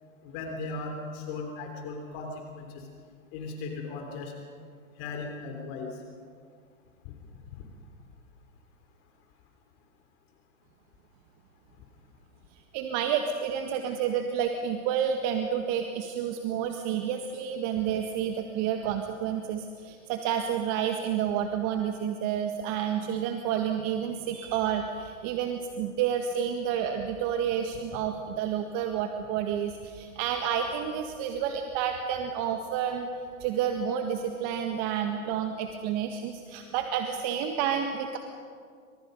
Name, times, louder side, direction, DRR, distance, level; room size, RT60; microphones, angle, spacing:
voice 1, 0.2-2.9 3.3-4.3 5.0-6.0 7.1-7.2, left 3 dB, 45° left, 2 dB, 3.5 m, -37 dB
voice 2, 12.7-33.1 33.4-38.2, right 8 dB, 40° right, 5 dB, 1.8 m, -30 dB
26.5 x 26.0 x 5.5 m, 2.2 s
hypercardioid pair, 120°, 44 cm